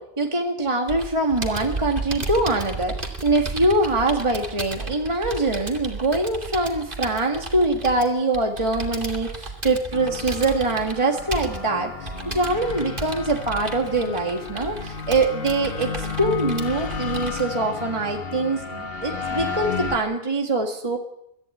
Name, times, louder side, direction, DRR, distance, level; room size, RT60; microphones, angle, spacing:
voice 1, 0.0-21.0, right 2 dB, 30° right, 3 dB, 1.9 m, -23 dB
Computer keyboard, 0.9-17.4, right 2 dB, 55° right, 3.0 m, -34 dB
sound 1, 9.9-20.0, left 5 dB, 65° left, 1.7 m, -32 dB
23.0 x 14.5 x 9.2 m, 0.79 s
omnidirectional pair, 1.1 m